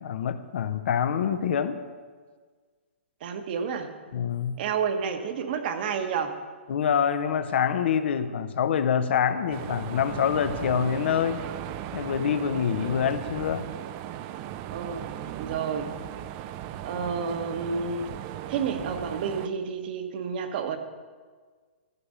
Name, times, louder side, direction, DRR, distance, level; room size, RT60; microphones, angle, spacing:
voice 1, 0.0-1.8 4.1-4.6 6.7-11.4 11.9-13.7, left 8 dB, 65° left, 11 dB, 0.7 m, -26 dB
voice 2, 3.2-3.9 4.6-6.4 14.7-15.9 16.8-18.0 18.5-20.8, right 6 dB, 50° right, 7 dB, 1.2 m, -30 dB
sound 1, 9.5-19.5, right 11 dB, 30° right, 0.4 m, -37 dB
14.0 x 4.9 x 6.6 m, 1.5 s
hypercardioid pair, 140°, 7 cm